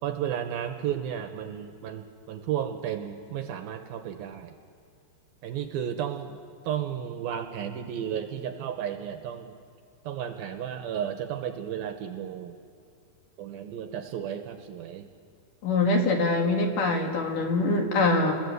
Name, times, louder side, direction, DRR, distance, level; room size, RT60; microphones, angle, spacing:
voice 1, 0.0-4.6 5.4-6.4 6.6-9.6 10.0-12.6 13.4-15.1, right 9 dB, 70° right, 6 dB, 2.5 m, -33 dB
voice 2, 15.6-18.3, left 2 dB, 55° left, 2 dB, 3.3 m, -24 dB
29.5 x 21.5 x 8.2 m, 2.3 s
omnidirectional pair, 4.9 m